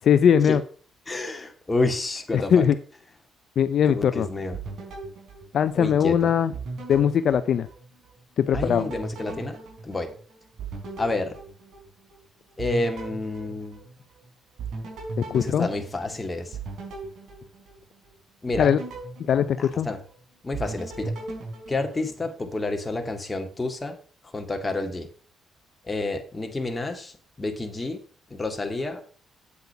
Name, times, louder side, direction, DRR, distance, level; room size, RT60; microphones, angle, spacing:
voice 1, 0.1-0.6 2.3-2.8 3.6-4.3 5.5-6.5 6.9-7.7 8.4-8.9 15.2-15.7 18.6-18.8 19.3-19.9, left 8 dB, 65° left, 12 dB, 0.5 m, -20 dB
voice 2, 1.1-2.7 3.9-4.6 5.7-6.3 8.5-9.6 9.8-10.1 11.0-11.4 12.6-13.8 15.4-16.6 18.4-18.7 19.6-20.0 20.4-21.1 21.7-24.0 24.3-25.1 25.8-28.0 28.3-29.0, left 2 dB, 20° left, 5 dB, 2.0 m, -29 dB
sound 1, 4.5-6.1 6.5-8.1 8.5-12.2 12.6-14.2 14.6-18.1 18.5-20.1 20.5-22.5, right 3 dB, 70° right, 4.1 m, -37 dB
8.6 x 7.9 x 5.7 m, 0.42 s
cardioid pair, 90°, 0 cm